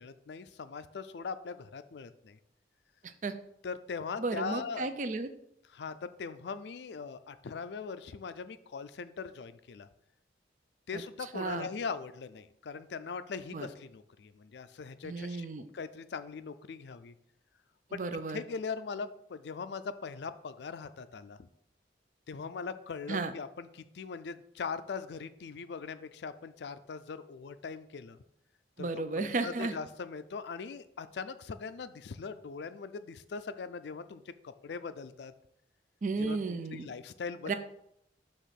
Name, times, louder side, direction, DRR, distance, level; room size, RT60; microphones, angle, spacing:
voice 1, 0.0-2.4 3.6-4.9 5.7-9.9 10.9-15.5 15.7-17.1 17.9-21.5 22.3-28.2 28.8-35.3 36.2-37.5, left 5 dB, 75° left, 12 dB, 0.4 m, -41 dB
voice 2, 3.0-3.3 4.2-5.3 10.9-11.0 11.3-11.7 13.5-13.7 15.0-15.6 17.9-18.4 23.1-23.3 28.8-29.7 36.0-36.9 37.5-37.6, right 3 dB, 45° right, 10 dB, 0.4 m, -34 dB
6.4 x 3.0 x 5.8 m, 0.76 s
head